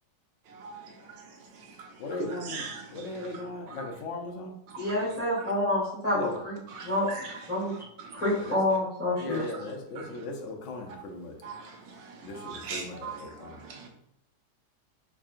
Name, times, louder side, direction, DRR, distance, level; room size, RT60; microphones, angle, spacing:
voice 1, 0.5-1.9 2.4-3.0 3.7-3.9 4.7-5.0 6.7-8.2 9.3-9.4 10.0-10.1 11.4-13.9, right 5 dB, 90° right, 2 dB, 1.4 m, -42 dB
voice 2, 2.0-4.5 6.1-6.4 8.3-8.6 9.2-11.4 12.2-13.6, left 2 dB, 70° left, 2 dB, 0.7 m, -38 dB
voice 3, 4.8-6.2 6.4-7.1 7.5-7.7 8.1-9.4, left 1 dB, 20° left, -10 dB, 1.6 m, -28 dB
3.6 x 3.6 x 2.4 m, 0.79 s
omnidirectional pair, 1.9 m